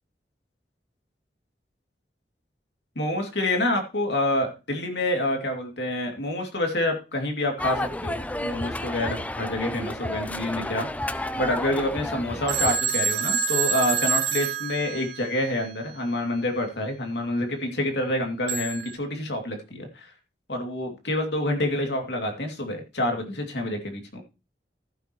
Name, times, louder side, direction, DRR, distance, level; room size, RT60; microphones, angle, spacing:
voice 1, 3.0-20.1 20.5-24.2, left 1 dB, 70° left, 3 dB, 2.6 m, -27 dB
sound 1, 7.6-12.8, left 1 dB, 10° left, 0.4 m, -31 dB
Telephone, 12.5-15.5 18.5-18.9, right 6 dB, 85° right, 2.5 m, -26 dB
14.5 x 7.9 x 3.1 m, 0.30 s
head